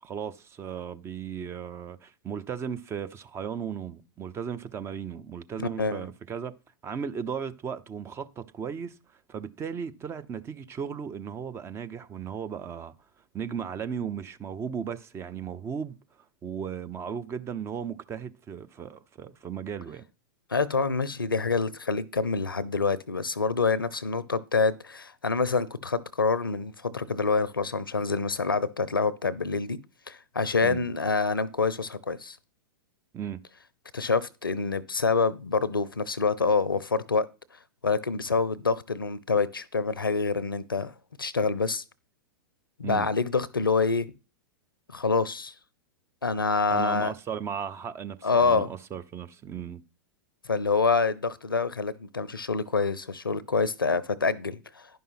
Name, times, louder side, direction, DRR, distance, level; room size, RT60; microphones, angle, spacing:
voice 1, 0.0-6.6 6.8-12.9 13.3-20.0 30.6-30.9 33.1-33.4 42.8-43.1 46.7-49.8, right 7 dB, 25° right, 0.7 m, -36 dB
voice 2, 5.6-6.1 20.5-29.8 30.1-32.4 33.9-37.3 37.8-40.9 41.2-41.8 42.8-44.1 44.9-45.5 46.2-47.1 48.2-48.7 50.4-54.9, left 4 dB, 90° left, 0.7 m, -26 dB
11.0 x 5.6 x 5.7 m
figure-of-eight pair, 100°, 11 cm